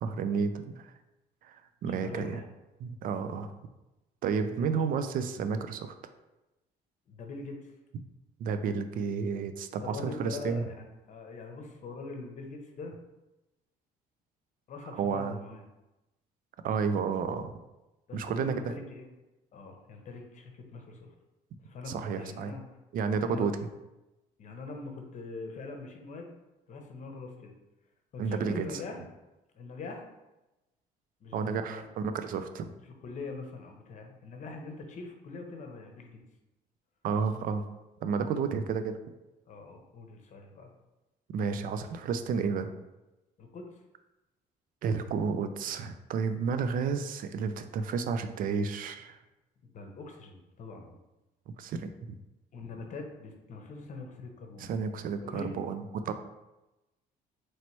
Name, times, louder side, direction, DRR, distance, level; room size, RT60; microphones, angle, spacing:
voice 1, 0.0-0.9 1.5-2.4 2.8-3.5 4.2-5.9 8.4-10.6 15.0-15.4 16.6-17.5 18.1-18.7 21.9-22.5 22.9-23.5 28.2-28.6 31.3-32.7 37.0-37.7 38.0-39.0 41.3-42.7 44.8-49.2 51.6-51.9 54.6-56.1, right 5 dB, 55° right, 9 dB, 0.4 m, -31 dB
voice 2, 1.9-2.5 4.5-4.7 7.1-7.7 9.8-13.0 14.7-15.6 18.1-19.1 19.5-21.1 21.6-22.6 23.2-23.5 24.4-26.3 26.7-27.5 28.1-29.0 29.5-30.1 31.2-31.9 33.0-36.2 39.5-40.7 43.4-43.8 49.6-51.0 52.5-54.7 55.1-55.5, left 3 dB, 45° left, 3 dB, 0.8 m, -43 dB
3.1 x 2.9 x 4.4 m, 1.0 s
cardioid pair, 110°, 17 cm